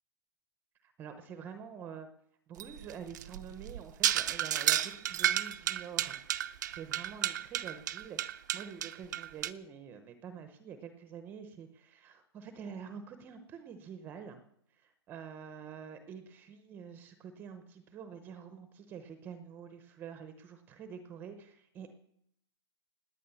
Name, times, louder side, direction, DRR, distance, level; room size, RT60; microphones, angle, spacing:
voice 1, 0.8-2.1 2.5-14.4 14.7-22.0, right 7 dB, 15° right, 9 dB, 0.8 m, -47 dB
sound 1, 2.6-9.5, right 12 dB, 40° right, 0.6 m, -32 dB
18.0 x 10.0 x 7.0 m, 0.72 s
hypercardioid pair, 165°, 14 cm